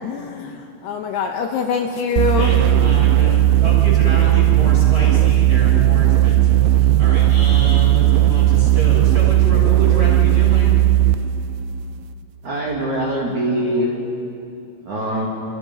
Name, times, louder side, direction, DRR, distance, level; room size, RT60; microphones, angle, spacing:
voice 1, 0.0-2.6, left 5 dB, 75° left, 4 dB, 2.8 m, -24 dB
sound 1, 2.2-11.3, right 13 dB, 80° right, 2.9 m, -15 dB
voice 2, 2.3-10.8, equal, 10° right, -6 dB, 7.4 m, -29 dB
voice 3, 12.4-13.9 14.9-15.3, right 1 dB, 45° right, -4 dB, 3.7 m, -22 dB
29.5 x 27.0 x 5.6 m, 2.6 s
omnidirectional pair, 5.2 m